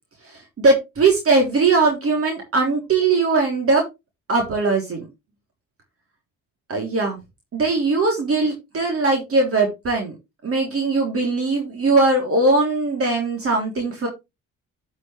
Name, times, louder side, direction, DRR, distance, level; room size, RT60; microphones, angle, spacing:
voice 1, 0.6-3.8 4.3-5.0 6.7-7.2 7.5-10.1 10.4-14.1, right 3 dB, 50° right, 1 dB, 3.6 m, -20 dB
12.0 x 6.4 x 3.4 m, 0.24 s
cardioid pair, 90°, 30 cm